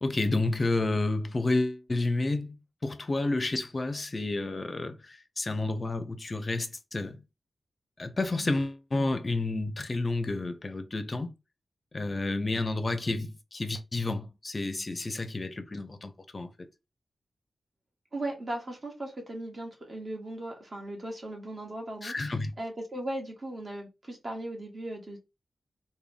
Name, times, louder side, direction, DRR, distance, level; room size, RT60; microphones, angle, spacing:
voice 1, 0.0-2.6 2.8-7.2 8.0-11.3 11.9-16.7 22.0-22.5, left 2 dB, 40° left, 0.6 m, -30 dB
voice 2, 18.1-25.2, right 1 dB, 40° right, 1.4 m, -38 dB
3.6 x 2.2 x 3.4 m
cardioid pair, 70°, 0 cm